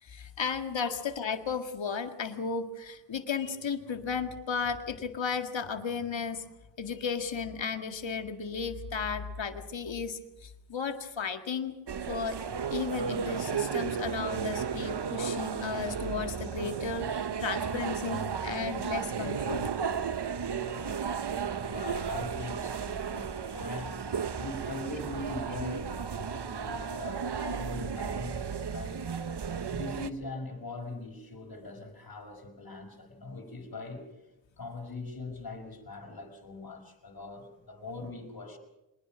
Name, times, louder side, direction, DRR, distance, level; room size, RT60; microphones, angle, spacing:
voice 1, 0.0-6.5 6.8-11.7 12.1-12.4 12.7-19.7, left 5 dB, 85° left, 8 dB, 2.0 m, -34 dB
sound 1, 11.9-30.1, right 6 dB, 65° right, 1.2 m, -34 dB
voice 2, 21.5-24.1 24.4-28.4 28.7-29.0 29.7-34.1 34.6-38.6, left 3 dB, 50° left, 3 dB, 5.6 m, -41 dB
24.5 x 21.0 x 6.3 m, 0.96 s
wide cardioid pair, 70°, 44 cm